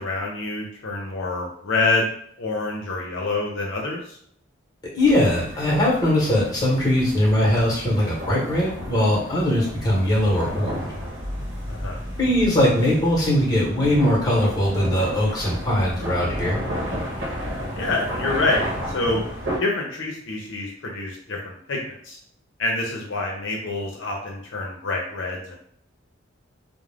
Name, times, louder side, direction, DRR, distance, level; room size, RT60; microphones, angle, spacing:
voice 1, 0.0-2.1 2.4-4.0 11.7-12.0 17.8-18.6 18.9-19.2 19.6-22.2 22.6-25.6, left 2 dB, 75° left, 0 dB, 0.6 m, -26 dB
voice 2, 4.9-10.8 12.2-16.6, left 1 dB, 20° left, -4 dB, 1.0 m, -20 dB
sound 1, 5.0-19.6, equal, 70° right, 0.9 m, -32 dB
2.4 x 2.1 x 3.3 m, 0.63 s
head